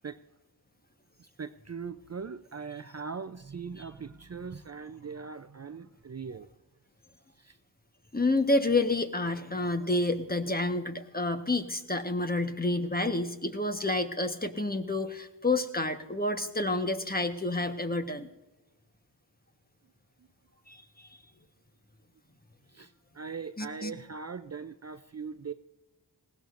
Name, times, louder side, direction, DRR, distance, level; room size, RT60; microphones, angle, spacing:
voice 1, 1.2-6.5 7.4-7.6 20.2-20.3 20.5-20.6 22.7-25.5, right 5 dB, 35° right, 10 dB, 0.6 m, -40 dB
voice 2, 8.1-18.3 20.7-21.1 23.6-23.9, left 2 dB, 20° left, 6 dB, 1.3 m, -29 dB
19.5 x 16.5 x 2.6 m, 1.1 s
cardioid pair, 40°, 43 cm